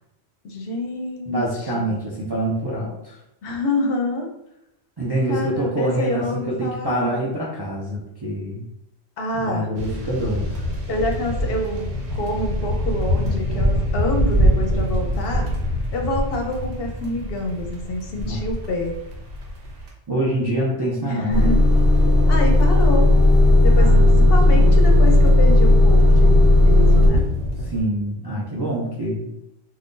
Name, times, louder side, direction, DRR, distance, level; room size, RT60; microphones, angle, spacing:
voice 1, 0.4-2.0 3.4-4.3 5.3-7.3 9.2-9.7 10.9-15.5 15.9-18.9 21.1-21.6 22.3-23.1 23.6-27.3, left 1 dB, 65° left, 3 dB, 0.7 m, -27 dB
voice 2, 1.3-3.2 5.0-8.6 9.3-10.6 18.2-18.4 20.1-21.5 23.7-24.3 24.6-24.7 27.7-29.3, right 1 dB, 35° right, -6 dB, 0.4 m, -25 dB
sound 1, 9.8-19.9 21.6-27.8, equal, 80° right, 1.0 m, -26 dB
Motor vehicle (road) / Engine starting / Idling, 21.3-27.1, left 1 dB, 15° left, 0.6 m, -14 dB
2.5 x 2.3 x 3.6 m, 0.82 s
omnidirectional pair, 1.1 m